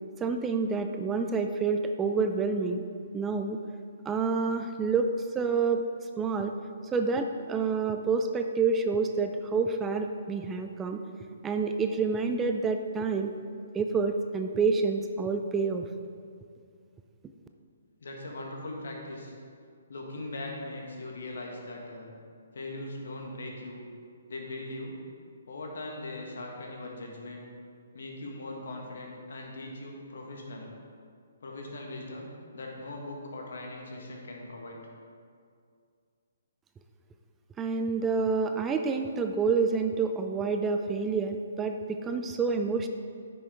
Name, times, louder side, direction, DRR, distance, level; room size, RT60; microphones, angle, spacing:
voice 1, 0.2-2.9 3.1-3.6 4.1-5.8 6.2-6.5 6.9-11.0 11.4-13.3 13.7-15.9 37.6-42.9, right 4 dB, 15° right, 5 dB, 0.4 m, -28 dB
voice 2, 18.0-19.3 19.9-22.1 22.5-23.8 24.3-25.0 25.5-27.5 27.9-30.7 31.4-34.8, left 2 dB, 65° left, 0 dB, 1.6 m, -40 dB
10.0 x 6.2 x 3.7 m, 2.3 s
figure-of-eight pair, 135°, 0 cm